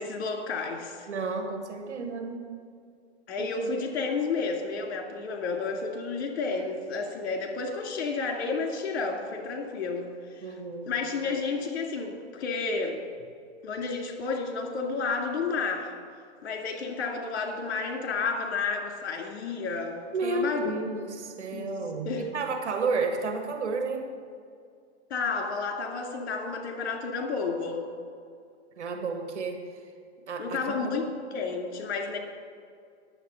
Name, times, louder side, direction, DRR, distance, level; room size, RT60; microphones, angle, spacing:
voice 1, 0.0-1.1 3.3-10.4 10.9-13.0 13.6-15.9 16.4-20.7 21.5-21.7 22.0-22.4 25.1-27.8 30.4-31.0 31.3-32.2, left 4 dB, 65° left, 2 dB, 2.4 m, -31 dB
voice 2, 1.1-2.5 3.4-3.5 10.4-11.0 20.1-24.1 28.8-29.6 30.3-30.9, right 3 dB, 80° right, 5 dB, 1.8 m, -31 dB
9.9 x 7.9 x 6.4 m, 2.2 s
hypercardioid pair, 140°, 34 cm